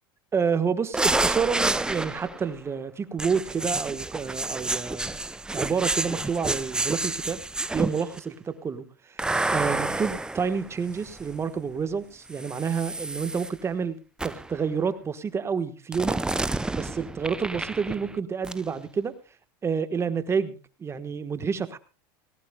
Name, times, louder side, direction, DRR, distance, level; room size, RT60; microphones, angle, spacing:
voice 1, 0.3-5.1 5.5-7.4 7.7-16.2 16.7-19.1 19.6-21.8, right 6 dB, 20° right, 11 dB, 1.3 m, -29 dB
sound 1, 0.9-2.5 3.2-8.2 9.2-11.3 12.3-13.5 14.2-14.6 15.9-18.2 18.4-18.6, right 2 dB, 5° right, 0.5 m, -29 dB
18.5 x 17.5 x 2.3 m, 0.35 s
supercardioid pair, 120°, 12 cm